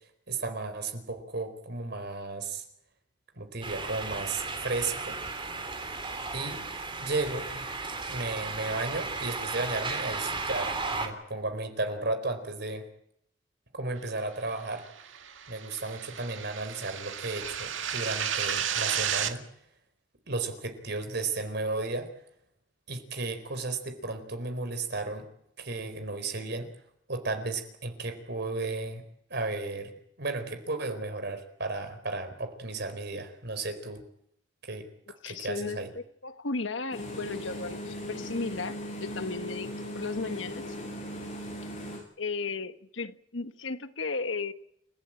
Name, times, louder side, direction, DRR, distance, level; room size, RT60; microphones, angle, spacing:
voice 1, 0.3-2.6 3.4-5.2 6.3-6.6 7.0-7.6 8.1-12.9 13.7-14.8 15.5-19.4 20.3-22.1 22.9-25.3 25.6-26.7 27.1-29.0 29.3-34.0 34.6-34.9 35.2-35.9, right 3 dB, 60° right, 4.4 m, -34 dB
sound 1, 3.6-11.1, right 3 dB, 25° right, 3.4 m, -35 dB
sound 2, 14.9-19.3, right 8 dB, 80° right, 2.0 m, -32 dB
voice 2, 35.2-40.6 42.2-44.5, left 3 dB, 75° left, 1.3 m, -35 dB
sound 3, 36.9-42.0, equal, 35° left, 7.6 m, -38 dB
29.5 x 15.0 x 9.1 m
head